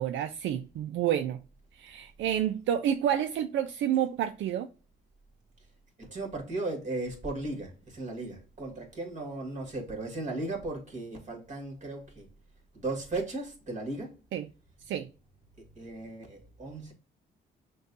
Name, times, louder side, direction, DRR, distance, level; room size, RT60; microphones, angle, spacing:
voice 1, 0.0-1.4 1.7-4.7 14.3-14.5 14.8-15.1, right 10 dB, 70° right, 0.4 m, -29 dB
voice 2, 6.1-12.3 12.7-14.2 15.8-16.9, right 2 dB, 35° right, 1.9 m, -36 dB
6.2 x 2.3 x 2.6 m
cardioid pair, 90°, 20 cm